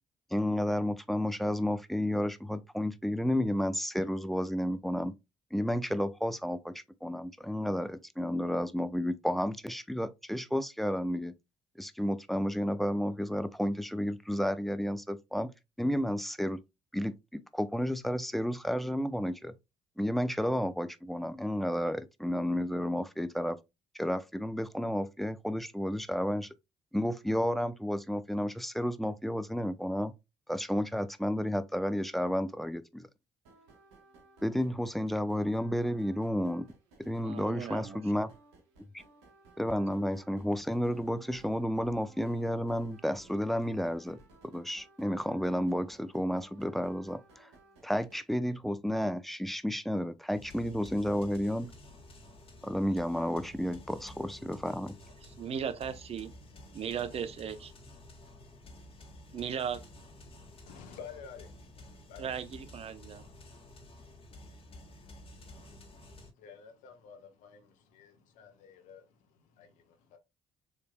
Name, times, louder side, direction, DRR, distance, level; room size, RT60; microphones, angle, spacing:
voice 1, 0.3-5.1 5.5-11.3 11.8-15.5 15.8-16.6 16.9-19.5 20.0-23.6 23.9-26.5 26.9-30.1 30.5-33.1 34.4-36.7 37.0-38.3 38.9-39.0 39.6-44.2 44.4-47.5 47.8-51.7 52.6-54.9, equal, ahead, 0.6 m, -31 dB
sound 1, 33.4-48.2, right 2 dB, 75° right, 1.2 m, -59 dB
voice 2, 37.2-38.0 55.2-56.3 56.7-57.7 59.3-59.8 62.2-63.2, right 8 dB, 45° right, 0.7 m, -37 dB
sound 2, 50.3-66.3, left 1 dB, 40° left, 1.7 m, -51 dB
voice 3, 60.7-61.5 62.0-62.3 66.4-70.2, left 6 dB, 65° left, 1.2 m, -51 dB
6.8 x 3.3 x 2.2 m
hypercardioid pair, 50°, 14 cm